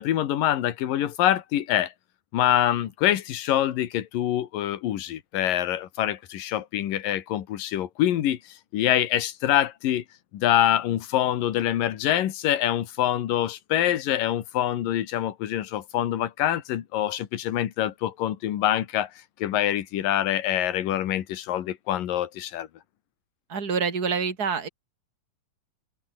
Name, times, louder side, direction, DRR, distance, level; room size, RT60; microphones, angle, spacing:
voice 1, 0.0-1.9 2.3-10.0 10.3-19.1 19.4-22.7, left 12 dB, 75° left, 3.2 m, -25 dB
voice 2, 23.5-24.7, right 5 dB, 25° right, 3.8 m, -26 dB
omnidirectional pair, 4.2 m